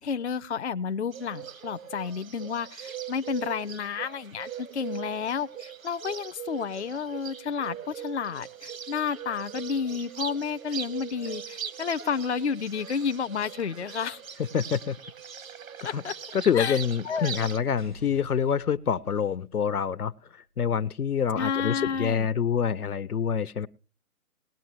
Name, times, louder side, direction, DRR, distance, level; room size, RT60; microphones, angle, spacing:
voice 1, 0.0-14.2 15.8-16.1 16.5-17.5 21.4-22.3, left 6 dB, 50° left, 0.5 m, -31 dB
Bird, 1.1-17.6, right 8 dB, 65° right, 1.0 m, -41 dB
voice 2, 14.5-15.0 15.8-16.0 16.3-20.1 20.6-23.7, left 7 dB, 80° left, 0.8 m, -26 dB
sound 1, 16.9-20.1, right 1 dB, 35° right, 0.5 m, -49 dB
19.5 x 11.0 x 2.9 m
figure-of-eight pair, 160°, 45 cm